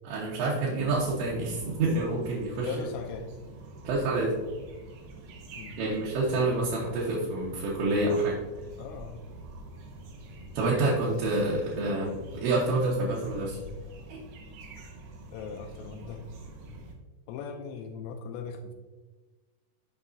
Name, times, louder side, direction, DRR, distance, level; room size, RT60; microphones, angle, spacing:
voice 1, 0.0-2.7 3.8-4.3 5.8-8.4 10.5-13.6 14.1-14.2, right 2 dB, 70° right, -6 dB, 3.0 m, -28 dB
sound 1, 0.8-16.9, right 2 dB, 85° right, 2.1 m, -46 dB
voice 2, 2.6-3.3 5.5-5.8 8.8-9.2 15.3-16.2 17.3-18.7, left 5 dB, 90° left, 3 dB, 3.3 m, -39 dB
8.7 x 6.2 x 2.7 m, 1.3 s
omnidirectional pair, 5.9 m